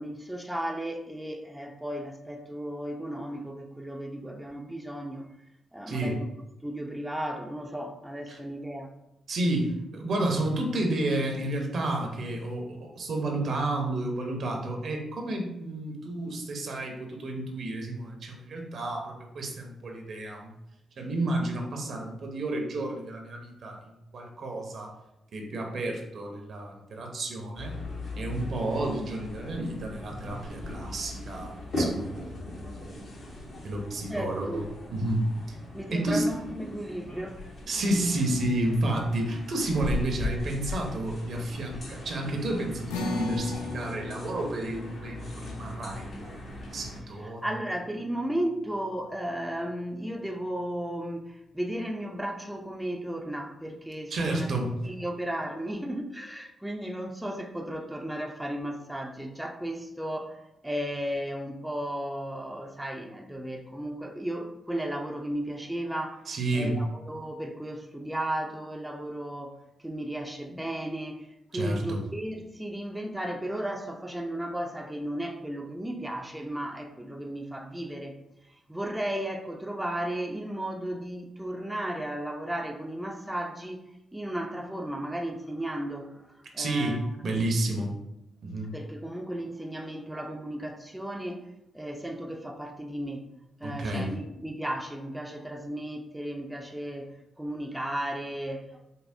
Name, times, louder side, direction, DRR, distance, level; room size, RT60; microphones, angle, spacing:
voice 1, 0.0-5.3 5.7-6.3 6.6-8.9 34.1-34.7 35.7-37.5 47.2-54.5 54.8-78.2 78.5-83.8 84.1-87.0 88.7-91.5 91.7-93.2 93.6-98.9, right 1 dB, 5° right, 3 dB, 0.5 m, -35 dB
voice 2, 9.3-20.5 21.0-23.8 24.1-24.9 25.3-27.8 28.2-32.0 33.6-34.6 34.9-35.6 35.9-36.2 37.7-46.3 46.7-47.5 54.1-54.7 66.3-66.8 71.5-72.0 86.6-88.0 88.4-88.7 93.6-94.2, right 1 dB, 60° right, 2 dB, 0.7 m, -31 dB
sound 1, 27.6-47.0, left 1 dB, 55° left, 1.2 m, -38 dB
sound 2, 42.9-49.5, left 3 dB, 85° left, 0.4 m, -39 dB
5.4 x 2.0 x 2.7 m, 0.88 s
hypercardioid pair, 40°, 0 cm